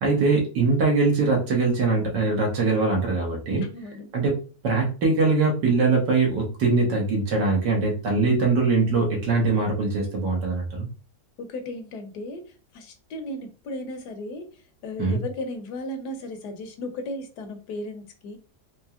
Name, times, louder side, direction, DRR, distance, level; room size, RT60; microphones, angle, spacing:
voice 1, 0.0-3.6 4.1-4.3 4.6-10.9 15.0-15.2, right 3 dB, 80° right, -1 dB, 1.9 m, -22 dB
voice 2, 3.6-4.1 11.4-12.4 12.7-14.5 14.8-18.4, left 1 dB, 75° left, 6 dB, 1.3 m, -35 dB
4.5 x 2.9 x 2.4 m, 0.36 s
omnidirectional pair, 1.8 m